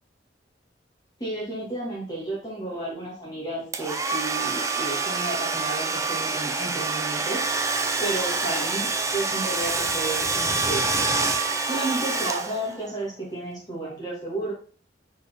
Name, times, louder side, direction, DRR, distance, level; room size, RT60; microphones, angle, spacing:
voice 1, 1.2-7.4 8.0-10.9 11.7-14.5, right 2 dB, 20° left, -5 dB, 2.4 m, -32 dB
Domestic sounds home sounds, 3.7-12.9, right 3 dB, 15° right, 0.6 m, -26 dB
5.1 x 4.4 x 5.5 m, 0.41 s
head